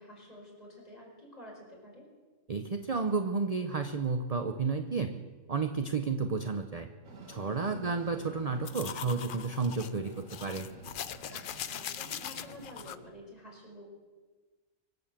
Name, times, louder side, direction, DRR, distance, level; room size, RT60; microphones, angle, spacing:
voice 1, 0.0-2.1 7.7-7.9 11.3-13.9, left 1 dB, 25° left, -2 dB, 4.9 m, -50 dB
voice 2, 2.5-5.2 5.5-6.9 7.3-10.7, right 4 dB, 35° right, 7 dB, 0.7 m, -32 dB
Train, 7.0-13.1, right 3 dB, 65° right, 2.3 m, -51 dB
sound 1, 8.6-13.0, left 9 dB, 60° left, 0.5 m, -41 dB
23.5 x 8.0 x 7.5 m, 1.3 s
omnidirectional pair, 1.5 m